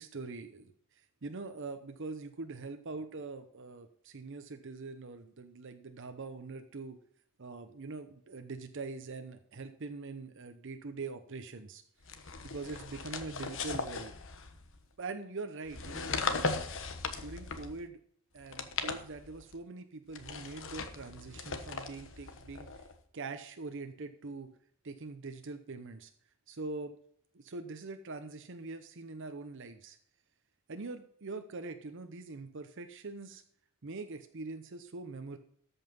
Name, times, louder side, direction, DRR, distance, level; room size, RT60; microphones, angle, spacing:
voice 1, 0.0-7.0 7.4-11.8 12.4-14.1 15.0-16.6 17.1-18.0 18.3-22.9 23.1-24.5 24.8-26.1 26.5-26.9 27.3-30.0 30.7-33.4 33.8-35.4, right 3 dB, 55° right, 8 dB, 0.8 m, -43 dB
sound 1, 12.0-14.8 15.6-17.9 18.4-19.5 20.1-23.0, left 4 dB, 60° left, 1.2 m, -38 dB
13.5 x 5.6 x 5.4 m, 0.65 s
head